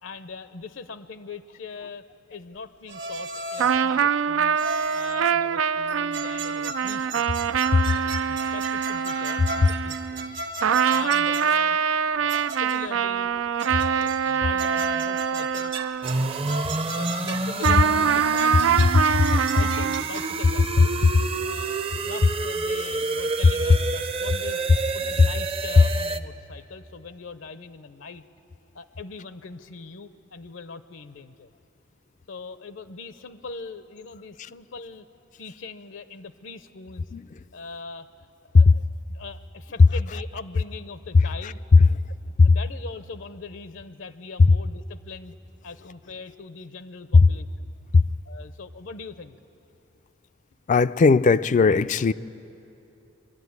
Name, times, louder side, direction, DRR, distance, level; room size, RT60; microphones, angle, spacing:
voice 1, 0.0-2.0 2.3-4.6 4.9-7.4 7.9-10.4 10.9-11.8 12.1-13.3 13.6-15.7 16.2-16.3 16.9-18.9 19.3-20.9 21.4-24.6 24.9-28.2 28.7-31.5 32.3-35.1 35.4-37.1 37.5-38.8 39.1-41.6 42.4-45.4 45.6-47.8 48.2-49.4, left 4 dB, 75° left, 12 dB, 0.7 m, -41 dB
sound 1, 2.9-3.9 4.6-5.3 5.9-11.6 12.3-13.0 13.6-14.3 14.6-17.9 18.4-20.4, right 3 dB, 65° right, 1.3 m, -36 dB
sound 2, 3.6-10.4 10.6-16.6 17.6-20.0, right 7 dB, 85° right, 0.4 m, -24 dB
voice 2, 3.8-4.1 7.7-7.9 37.1-37.2 38.5-38.7 42.4-42.5 47.1-47.3 47.9-48.0 50.7-52.1, left 4 dB, 40° left, 15 dB, 0.4 m, -17 dB
sound 3, 16.0-26.2, right 3 dB, 30° right, 0.6 m, -29 dB
23.5 x 12.0 x 9.5 m, 2.8 s
head